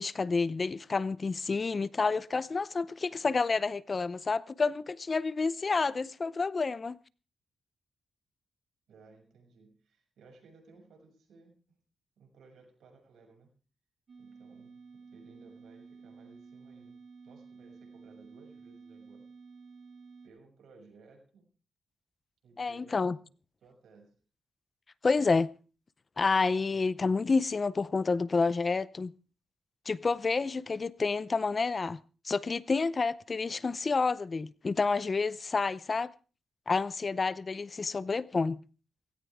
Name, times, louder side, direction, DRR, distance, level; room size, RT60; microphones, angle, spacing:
voice 1, 0.0-7.0 22.6-23.2 25.0-25.5 26.2-29.1 29.9-32.0 32.2-36.1 36.7-38.6, left 4 dB, 35° left, 0.6 m, -29 dB
voice 2, 8.9-11.8 12.2-13.5 14.2-19.3 20.2-21.4 22.4-23.3 23.6-24.2, right 3 dB, 80° right, 6.7 m, -58 dB
sound 1, 14.1-20.3, right 4 dB, 55° right, 7.4 m, -52 dB
17.5 x 17.0 x 3.6 m
cardioid pair, 110°, 0 cm